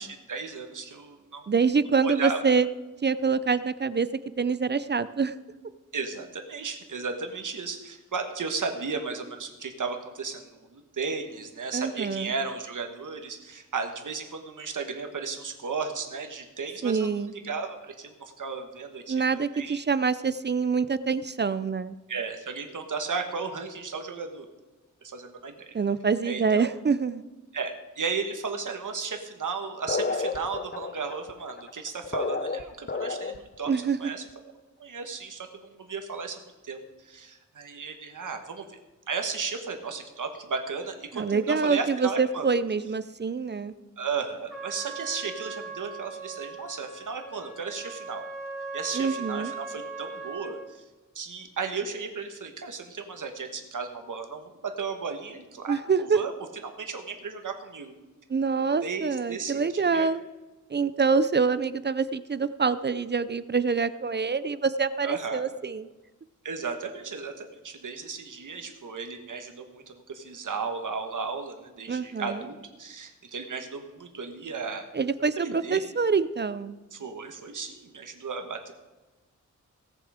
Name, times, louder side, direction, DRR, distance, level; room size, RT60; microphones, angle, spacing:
voice 1, 0.0-1.4 2.0-2.4 5.9-17.1 17.4-19.8 22.1-24.5 25.0-25.7 26.2-26.7 27.5-33.7 34.0-34.2 34.8-36.4 36.6-38.8 39.1-42.5 44.0-48.2 48.7-50.8 51.1-56.3 56.6-57.9 58.8-60.1 65.0-65.4 66.4-74.8 75.4-75.8 76.9-78.7, right 5 dB, 75° right, 5 dB, 1.5 m, -35 dB
voice 2, 1.5-2.7 3.0-4.1 4.4-5.4 11.7-12.3 16.8-17.3 19.1-22.0 25.7-27.2 33.7-34.1 41.1-43.7 48.9-49.5 55.7-56.2 58.3-60.2 60.7-65.9 71.9-72.4 74.9-76.7, right 5 dB, 35° right, 15 dB, 0.4 m, -26 dB
sound 1, 29.9-33.6, left 4 dB, 35° left, 0.6 m, -31 dB
Trumpet, 44.5-50.7, right 4 dB, ahead, 2.8 m, -39 dB
18.0 x 6.9 x 5.0 m, 1.1 s
wide cardioid pair, 115°, 31 cm